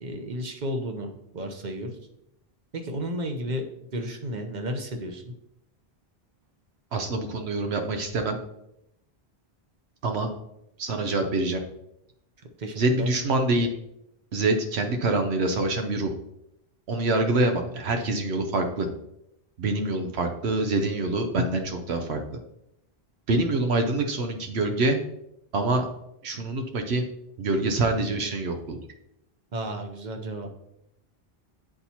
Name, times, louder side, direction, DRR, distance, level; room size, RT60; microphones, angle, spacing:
voice 1, 0.0-1.9 2.7-3.6 3.9-5.2 12.6-13.1 29.5-30.5, equal, 45° right, 4 dB, 0.9 m, -32 dB
voice 2, 6.9-8.4 10.0-10.3 10.8-11.6 12.8-13.7 14.3-16.1 16.9-18.9 19.6-22.4 23.3-25.0 25.5-25.9 26.2-27.0 27.4-28.8, right 2 dB, 80° right, 5 dB, 1.0 m, -25 dB
10.0 x 4.1 x 2.9 m, 0.81 s
omnidirectional pair, 1.1 m